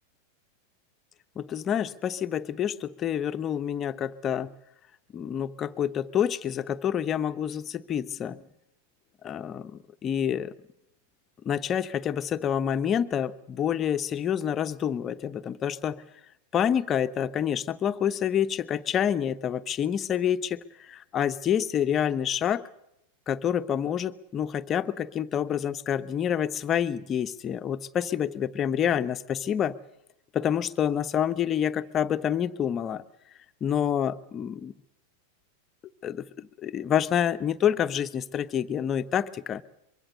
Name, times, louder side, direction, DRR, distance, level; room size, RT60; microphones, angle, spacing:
voice 1, 1.4-4.5 5.1-8.4 9.2-10.5 11.4-16.0 16.5-22.6 23.3-29.8 30.3-33.0 33.6-34.7 36.0-39.6, left 9 dB, 25° left, 11 dB, 1.0 m, -28 dB
24.0 x 23.0 x 6.8 m, 0.84 s
figure-of-eight pair, 90°, 0 cm